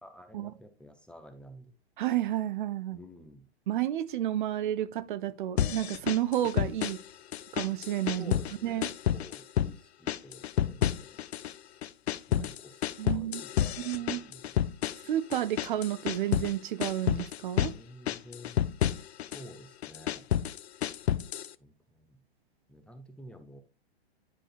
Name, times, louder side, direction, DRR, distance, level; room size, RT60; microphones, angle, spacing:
voice 1, 0.0-1.7 2.9-3.5 8.2-11.2 12.3-14.5 17.6-18.6 19.3-20.3 21.6-22.2 22.7-23.6, left 1 dB, 5° left, 0.6 m, -51 dB
voice 2, 2.0-3.0 3.7-7.0 7.5-8.3 8.6-8.9 12.4-12.5 13.0-13.4 13.8-14.2 15.1-17.7, right 12 dB, 50° right, 0.5 m, -31 dB
sound 1, 5.6-7.1 7.3-8.6 8.8-9.8 10.1-11.5 11.8-16.5 16.8-17.8 18.1-19.4 19.8-21.5, left 11 dB, 75° left, 0.5 m, -30 dB
10.0 x 5.0 x 2.4 m
hypercardioid pair, 120°, 32 cm